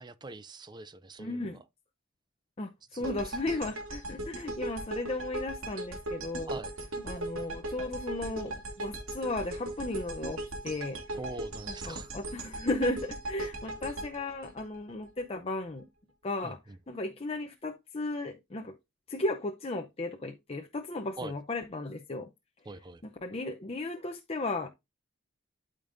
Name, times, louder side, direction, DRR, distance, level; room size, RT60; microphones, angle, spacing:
voice 1, 0.0-1.6 2.9-3.4 6.5-6.7 11.1-12.1 16.4-16.8 21.2-21.4 22.7-23.0, right 2 dB, 20° right, 0.5 m, -43 dB
voice 2, 1.2-1.6 2.6-6.6 7.0-11.0 11.7-15.8 16.2-16.6 16.9-18.8 19.1-22.3 23.2-24.7, left 2 dB, 30° left, 0.7 m, -35 dB
sound 1, 3.0-15.2, right 1 dB, 85° right, 2.6 m, -38 dB
12.5 x 5.2 x 2.6 m
head